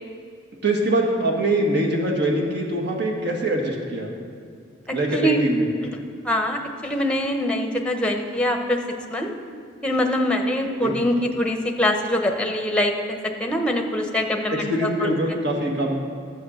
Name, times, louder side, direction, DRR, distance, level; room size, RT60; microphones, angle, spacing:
voice 1, 0.6-4.1 4.9-5.7 10.8-11.0 14.5-16.0, right 1 dB, 55° right, 0 dB, 1.7 m, -23 dB
voice 2, 6.2-8.8 9.1-9.3 9.8-15.1, left 1 dB, 5° left, 3 dB, 0.9 m, -23 dB
12.0 x 7.8 x 6.4 m, 2.2 s
head